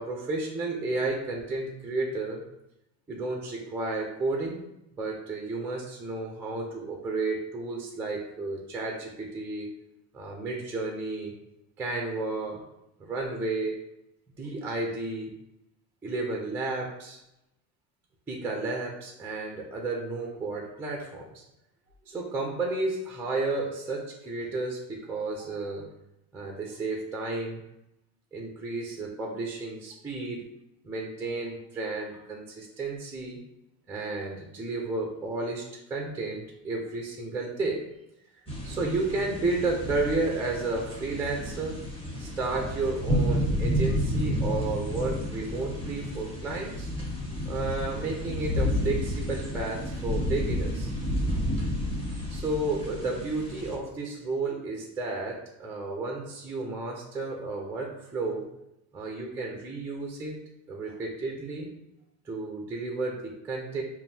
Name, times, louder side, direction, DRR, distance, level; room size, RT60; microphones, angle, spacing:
voice 1, 0.0-2.4 3.1-4.6 5.0-9.7 10.1-11.3 11.8-12.6 13.0-13.8 14.4-15.3 16.0-17.2 18.3-21.4 22.1-25.9 26.3-27.6 28.3-30.4 30.8-33.4 33.9-37.8 38.6-41.8 42.2-46.9 47.5-50.9 52.3-58.5 58.9-60.4 60.7-61.7 62.3-63.8, right 3 dB, 5° right, 1 dB, 0.3 m, -32 dB
sound 1, 38.5-53.7, equal, 15° left, 1.1 m, -31 dB
5.2 x 2.6 x 2.6 m, 0.85 s
cardioid pair, 140°, 41 cm